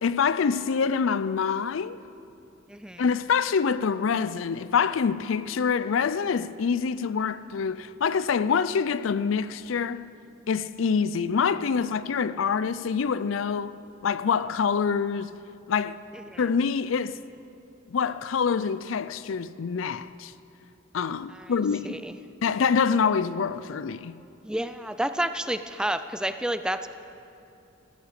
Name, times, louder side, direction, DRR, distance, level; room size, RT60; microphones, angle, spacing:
voice 1, 0.0-2.0 3.0-10.1 10.5-13.7 14.0-15.3 15.7-16.0 16.4-17.2 17.9-20.3 20.9-22.0 22.4-24.2, left 6 dB, 75° left, 0.4 m, -26 dB
voice 2, 2.7-3.0 16.1-16.4 21.3-21.5 21.8-22.2 24.4-26.9, right 1 dB, 5° right, 0.4 m, -30 dB
16.0 x 13.5 x 6.6 m
head